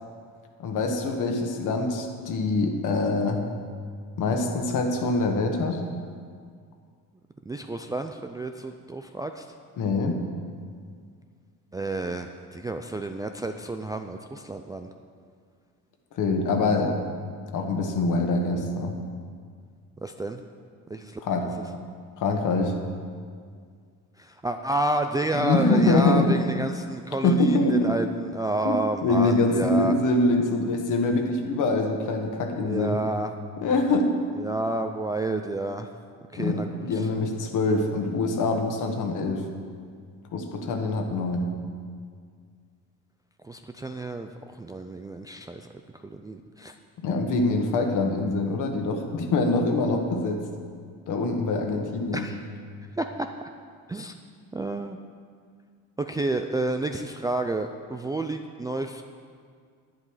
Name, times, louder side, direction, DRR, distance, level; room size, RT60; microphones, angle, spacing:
voice 1, 0.6-3.4 4.2-5.8 9.8-10.2 16.1-17.0 17.5-18.9 21.2-21.5 22.2-22.8 25.3-26.4 27.2-27.8 28.6-28.7 29.0-33.0 33.6-34.1 36.3-39.4 40.3-41.5 47.0-50.4 51.1-52.3, left 2 dB, 60° left, 4 dB, 1.5 m, -24 dB
voice 2, 7.5-9.5 11.7-14.9 20.0-20.4 20.9-21.2 24.2-29.9 32.6-33.3 34.4-35.9 36.3-37.1 43.4-45.7 46.0-46.7 52.1-52.4 53.0-53.5 53.9-54.1 54.5-55.0 56.0-59.0, right 2 dB, 10° right, 5 dB, 0.3 m, -30 dB
10.5 x 10.5 x 4.8 m, 2.1 s
cardioid pair, 135°, 35 cm